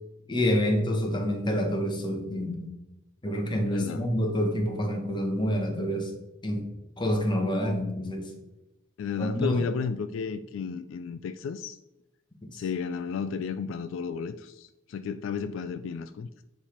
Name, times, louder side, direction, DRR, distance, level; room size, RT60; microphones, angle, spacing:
voice 1, 0.3-2.7 3.2-6.1 6.4-6.6 7.0-8.3 9.2-9.6 12.5-12.6, equal, 25° left, 1.1 m, -27 dB
voice 2, 3.7-4.1 9.0-11.8 12.5-16.3, left 6 dB, 75° left, 0.3 m, -33 dB
7.2 x 3.4 x 4.4 m
head